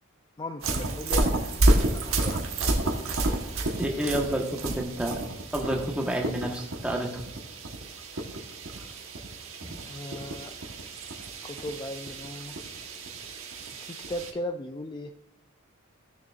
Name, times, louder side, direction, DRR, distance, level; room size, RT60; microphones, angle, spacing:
voice 1, 0.4-3.5 3.7-3.9 9.8-10.5 11.4-12.7 13.7-15.1, left 1 dB, 20° left, 6 dB, 0.3 m, -38 dB
sound 1, 0.6-14.3, right 2 dB, 75° right, 1.2 m, -30 dB
voice 2, 3.8-5.2 5.5-7.2 9.6-9.8, right 1 dB, 5° right, 0 dB, 1.2 m, -29 dB
15.5 x 6.7 x 2.4 m, 0.78 s
head